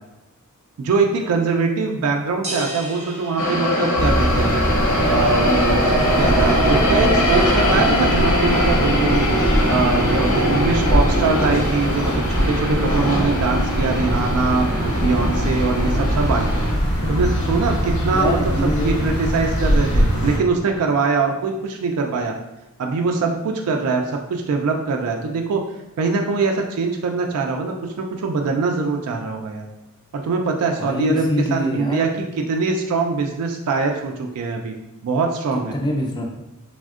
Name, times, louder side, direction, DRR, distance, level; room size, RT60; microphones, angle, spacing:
voice 1, 0.8-4.6 5.1-9.3 9.7-16.5 17.1-22.3 22.8-25.6 26.0-29.7 30.1-34.7 35.0-35.7, right 4 dB, 90° right, 3 dB, 0.3 m, -22 dB
sound 1, 2.4-4.5, right 1 dB, 30° right, 0.7 m, -33 dB
sound 2, 3.4-16.7, equal, 65° left, 0.7 m, -21 dB
sound 3, 4.0-20.4, equal, 85° left, 1.0 m, -22 dB
voice 2, 18.0-19.0 30.8-32.1 35.7-36.3, equal, 20° left, 2 dB, 0.3 m, -24 dB
3.4 x 2.1 x 2.3 m, 0.99 s
head